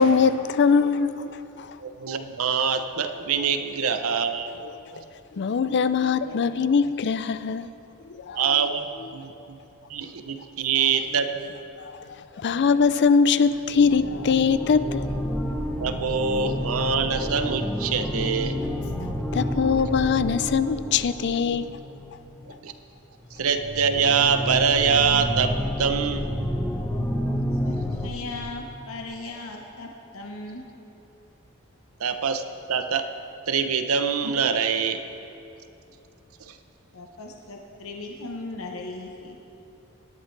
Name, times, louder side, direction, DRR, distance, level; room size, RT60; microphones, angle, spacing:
voice 1, 0.0-1.8 5.3-7.7 8.1-8.4 11.9-12.0 12.4-15.0 19.3-21.7, left 5 dB, 55° left, 0.4 m, -22 dB
voice 2, 1.8-4.5 8.3-9.6 9.9-11.5 15.8-18.6 22.4-22.7 23.3-26.3 32.0-32.4 32.7-33.1 33.5-35.0 36.4-36.6, right 6 dB, 90° right, 0.7 m, -24 dB
sound 1, 12.6-12.7 13.5-22.5 23.3-28.1, equal, 5° left, 0.8 m, -30 dB
voice 3, 27.6-30.6 36.9-39.4, left 2 dB, 80° left, 1.0 m, -37 dB
17.5 x 11.0 x 3.3 m
head